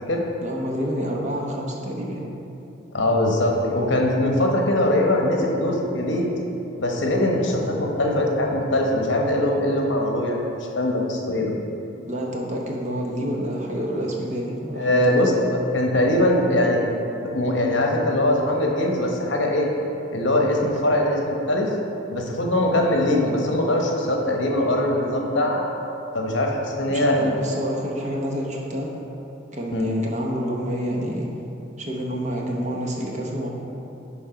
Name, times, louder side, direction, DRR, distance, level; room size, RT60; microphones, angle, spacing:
voice 1, 0.4-2.3 11.4-11.5 12.1-15.3 26.9-28.9 29.5-31.3 31.8-33.5, equal, 35° right, -1 dB, 0.9 m, -28 dB
voice 2, 2.9-6.3 6.8-10.4 10.7-11.5 14.7-16.8 17.2-19.7 20.1-21.7 22.1-25.6 26.1-27.3 29.7-29.9, left 1 dB, 65° left, 0 dB, 1.0 m, -21 dB
10.5 x 3.5 x 5.0 m, 2.9 s
head